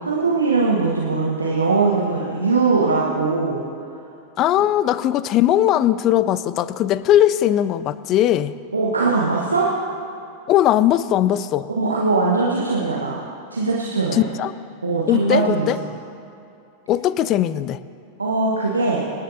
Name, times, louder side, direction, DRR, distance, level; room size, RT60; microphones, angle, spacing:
voice 1, 0.0-3.6 8.7-9.7 11.8-13.2 13.5-14.2 14.8-15.7 18.2-19.0, right 3 dB, 75° right, -4 dB, 1.3 m, -20 dB
voice 2, 4.4-8.5 10.5-11.7 14.1-14.5 15.1-15.8 16.9-17.8, left 12 dB, 35° left, 16 dB, 0.4 m, -19 dB
26.5 x 10.5 x 2.8 m, 2.6 s
figure-of-eight pair, 90°, 0 cm